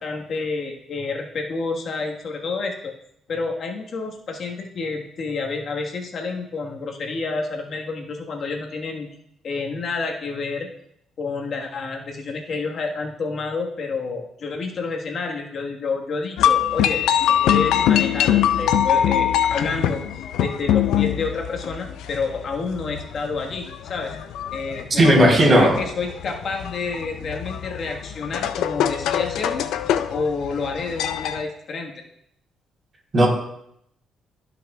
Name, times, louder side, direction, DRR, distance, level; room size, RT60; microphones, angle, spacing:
voice 1, 0.0-2.9 3.3-9.1 9.4-10.7 11.2-17.0 17.3-24.2 24.5-29.7 30.1-31.9, left 4 dB, 55° left, 1 dB, 1.4 m, -29 dB
sound 1, 16.4-31.4, left 10 dB, 85° left, 0.5 m, -23 dB
voice 2, 25.0-25.8 33.1-33.3, right 1 dB, 35° right, -2 dB, 3.7 m, -14 dB
17.0 x 6.0 x 2.3 m, 0.74 s
cardioid pair, 90°, 0 cm